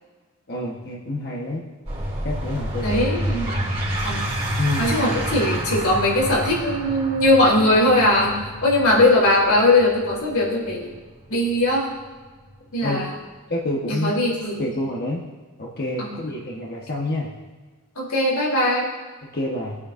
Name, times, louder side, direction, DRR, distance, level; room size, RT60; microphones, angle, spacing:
voice 1, 0.5-1.6 2.2-3.0 4.6-4.9 12.8-13.0 13.5-14.1 14.6-15.2 15.6-17.3 19.3-19.8, left 1 dB, 45° left, -3 dB, 1.2 m, -27 dB
sound 1, 1.9-13.0, equal, 30° right, 2.5 m, -29 dB
voice 2, 2.8-3.5 4.0-4.3 4.8-8.3 8.6-10.9 11.3-11.8 12.7-13.1 13.9-14.6 16.0-16.2 18.0-18.9, left 1 dB, 90° left, -4 dB, 3.4 m, -20 dB
19.0 x 8.5 x 2.6 m, 1.4 s
head